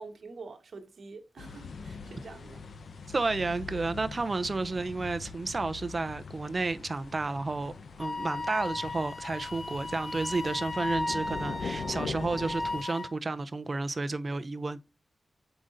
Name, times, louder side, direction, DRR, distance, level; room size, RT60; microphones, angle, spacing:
voice 1, 0.0-2.6, right 3 dB, 70° right, 1.2 m, -46 dB
sound 1, 1.4-12.8, left 5 dB, 70° left, 0.8 m, -42 dB
voice 2, 3.1-7.7 8.0-14.8, right 3 dB, 35° right, 0.6 m, -31 dB
Wind instrument woodwind instrument, 8.0-13.1, left 2 dB, 45° left, 1.3 m, -36 dB
7.8 x 5.0 x 2.6 m
wide cardioid pair, 110°, 0 cm